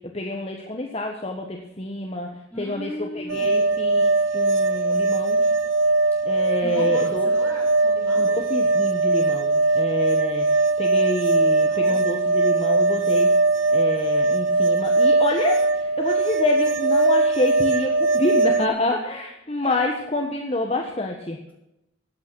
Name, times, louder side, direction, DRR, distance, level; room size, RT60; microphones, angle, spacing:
voice 1, 0.1-5.4 6.2-7.3 8.2-13.3 13.7-21.4, left 2 dB, 30° left, 2 dB, 1.3 m, -28 dB
voice 2, 2.5-3.7 6.6-8.4 11.6-12.1 19.6-19.8, equal, 10° left, -3 dB, 4.6 m, -37 dB
sound 1, 3.3-18.7, right 3 dB, 85° right, 0.7 m, -20 dB
15.0 x 8.7 x 6.2 m, 0.87 s
head